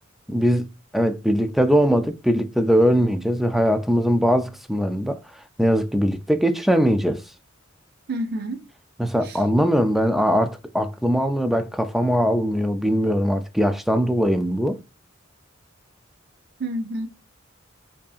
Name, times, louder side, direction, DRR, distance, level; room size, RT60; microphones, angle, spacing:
voice 1, 0.3-0.7 0.9-5.2 5.6-7.2 9.0-14.8, equal, ahead, 0.3 m, -21 dB
voice 2, 8.1-8.6 9.2-9.4 16.6-17.1, right 1 dB, 55° right, 0.5 m, -28 dB
4.8 x 2.7 x 2.4 m
head